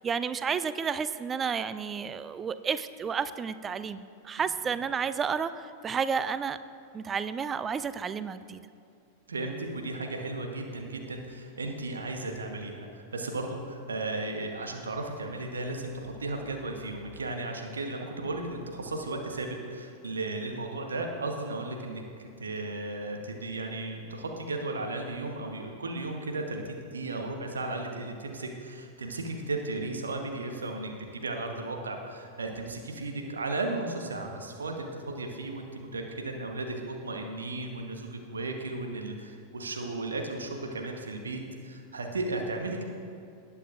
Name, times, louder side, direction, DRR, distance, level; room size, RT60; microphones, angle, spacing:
voice 1, 0.0-6.6 6.9-8.6, right 6 dB, 20° right, 14 dB, 0.4 m, -31 dB
voice 2, 9.3-42.8, right 2 dB, 70° right, 3 dB, 1.1 m, -35 dB
19.0 x 8.5 x 2.5 m, 2.4 s
figure-of-eight pair, 90°, 0 cm